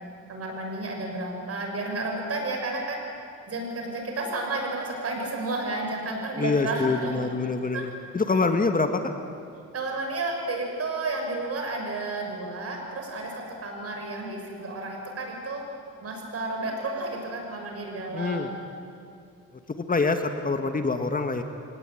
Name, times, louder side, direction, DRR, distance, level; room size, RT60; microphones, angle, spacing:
voice 1, 0.3-3.0 3.5-7.3 7.7-7.8 9.7-13.3 13.6-15.6 16.0-18.6, right 2 dB, 50° right, 1 dB, 6.9 m, -32 dB
voice 2, 6.4-9.0 18.1-18.5 19.7-21.4, left 3 dB, 30° left, 6 dB, 1.7 m, -25 dB
25.0 x 19.0 x 9.1 m, 2.4 s
cardioid pair, 90°, 30 cm